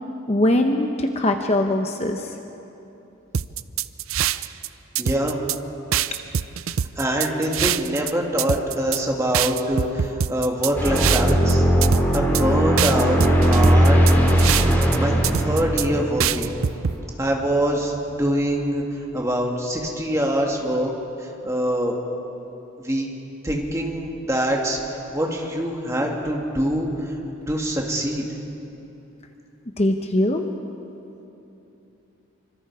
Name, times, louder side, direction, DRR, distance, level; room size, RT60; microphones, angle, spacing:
voice 1, 0.3-2.4 29.8-30.5, left 1 dB, 30° left, 4 dB, 0.8 m, -21 dB
sound 1, 3.3-4.7 4.9-5.6 5.9-8.1 8.4-9.0 9.3-11.5 11.8-12.4 12.8-15.0 15.2-15.8 16.2-16.9, right 9 dB, 75° right, 0.5 m, -24 dB
voice 2, 5.0-5.4 7.0-11.6 12.1-14.0 15.0-15.1 15.4-16.5 17.2-17.9 18.2-18.8 19.1-20.9 21.4-22.0 22.8-23.1 23.4-27.1 27.5-28.2, equal, 15° right, -1 dB, 2.3 m, -24 dB
sound 2, 10.7-17.4, equal, 10° left, 2.6 m, -19 dB
26.5 x 25.0 x 4.8 m, 3.0 s
head